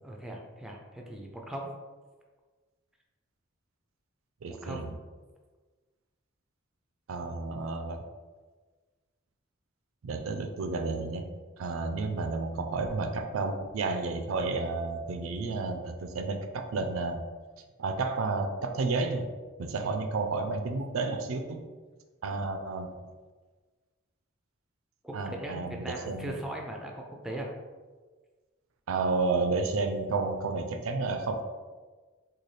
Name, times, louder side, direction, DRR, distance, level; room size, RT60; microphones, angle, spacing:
voice 1, 0.0-1.7 4.5-4.8 19.8-20.0 25.0-27.5, right 1 dB, ahead, 0 dB, 0.4 m, -39 dB
voice 2, 4.4-4.9 7.1-8.0 10.0-11.2 11.6-17.2 17.8-19.3 19.6-21.7 22.2-23.0 25.1-26.3 28.9-31.4, right 3 dB, 85° right, 6 dB, 0.4 m, -31 dB
4.0 x 2.3 x 3.2 m, 1.4 s
head